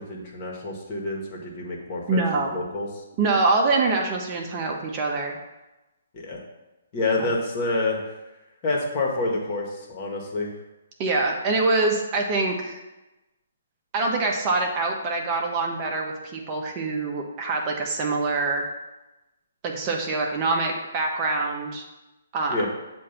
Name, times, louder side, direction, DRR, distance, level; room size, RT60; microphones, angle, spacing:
voice 1, 0.0-2.2 2.5-2.9 6.1-6.4 6.9-8.0 8.6-10.5 22.5-22.7, left 2 dB, 35° left, -1 dB, 1.4 m, -28 dB
voice 2, 2.1-2.6 3.2-5.4 7.2-7.3 11.0-12.8 13.9-18.6 19.6-21.8 22.3-22.6, right 3 dB, 30° right, 1 dB, 0.8 m, -25 dB
7.5 x 2.6 x 5.6 m, 1.0 s
figure-of-eight pair, 135°, 0 cm